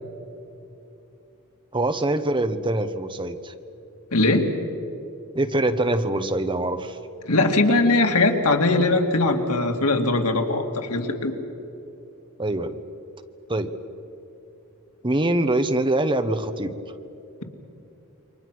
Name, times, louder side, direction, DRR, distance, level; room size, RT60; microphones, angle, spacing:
voice 1, 1.7-3.5 5.3-7.0 12.4-12.8 13.5-13.7 15.0-16.8, right 1 dB, 20° right, 9 dB, 1.0 m, -24 dB
voice 2, 4.1-4.5 7.3-11.3, left 2 dB, 85° left, 4 dB, 2.4 m, -20 dB
29.0 x 24.5 x 6.2 m, 2.9 s
head